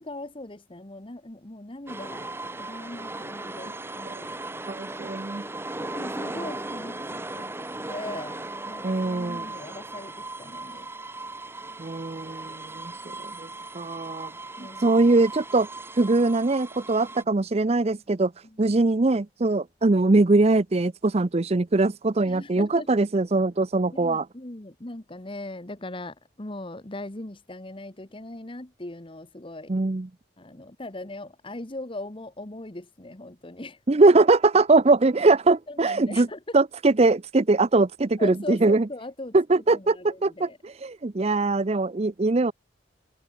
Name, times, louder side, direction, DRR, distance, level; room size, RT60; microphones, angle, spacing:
voice 1, 0.0-2.3 2.6-4.4 5.9-10.9 14.6-14.9 22.2-23.1 23.9-29.7 30.4-33.8 35.7-36.4 38.2-40.6, left 2 dB, 30° left, 1.4 m, -39 dB
sound 1, 1.9-17.2, right 2 dB, 15° right, 1.5 m, -37 dB
voice 2, 4.7-5.4 8.8-9.5 11.8-12.9 13.4-13.5 13.7-14.3 14.8-15.7 15.9-18.3 18.6-24.3 29.7-30.1 33.9-36.3 36.5-38.9 39.3-42.5, right 3 dB, 35° right, 0.6 m, -22 dB
open air
head